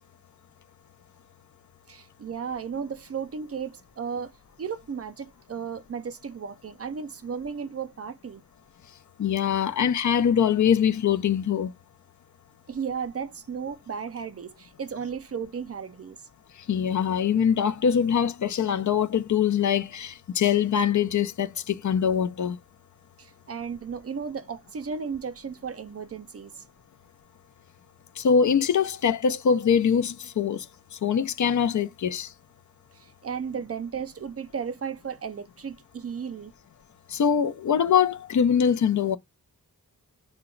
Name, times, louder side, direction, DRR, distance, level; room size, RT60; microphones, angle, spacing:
voice 1, 1.9-4.3 4.6-8.4 12.7-16.2 23.2-26.5 32.9-36.5, right 6 dB, 45° right, 0.4 m, -34 dB
voice 2, 9.2-11.7 16.7-22.6 28.2-30.7 31.0-32.3 37.1-39.2, left 7 dB, 55° left, 0.4 m, -23 dB
2.8 x 2.2 x 3.7 m
wide cardioid pair, 95°, 35 cm